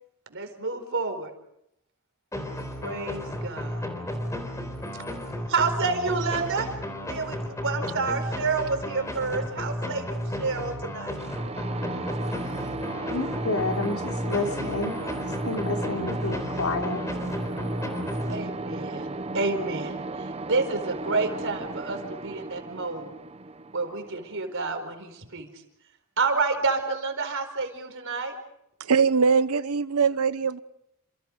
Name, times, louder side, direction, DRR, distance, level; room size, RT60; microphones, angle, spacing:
voice 1, 0.3-1.3 2.8-3.8 5.5-6.7 7.0-11.2 18.3-20.0 20.4-23.1 23.7-25.5 26.2-28.3, right 4 dB, 60° right, 7 dB, 4.6 m, -29 dB
sound 1, 2.3-18.8, left 1 dB, 15° left, 3.9 m, -33 dB
sound 2, 11.2-24.9, right 2 dB, 30° right, 0.9 m, -35 dB
voice 2, 13.1-17.0, left 3 dB, 75° left, 3 dB, 3.5 m, -30 dB
voice 3, 28.8-30.6, right 5 dB, 85° right, 14 dB, 0.9 m, -22 dB
29.0 x 28.0 x 5.2 m, 0.79 s
head